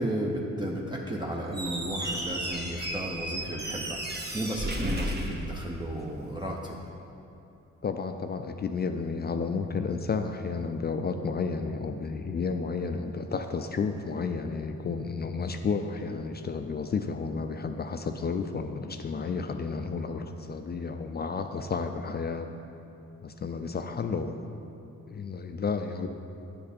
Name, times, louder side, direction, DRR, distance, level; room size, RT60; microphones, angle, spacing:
voice 1, 0.0-6.8, right 1 dB, 15° right, -2 dB, 0.7 m, -33 dB
Squeak, 1.5-6.1, right 1 dB, 35° right, 1.1 m, -34 dB
voice 2, 7.8-22.5 23.2-24.3 25.1-26.1, left 5 dB, 35° left, 7 dB, 0.4 m, -32 dB
9.7 x 5.1 x 4.3 m, 2.7 s
cardioid pair, 80°, 29 cm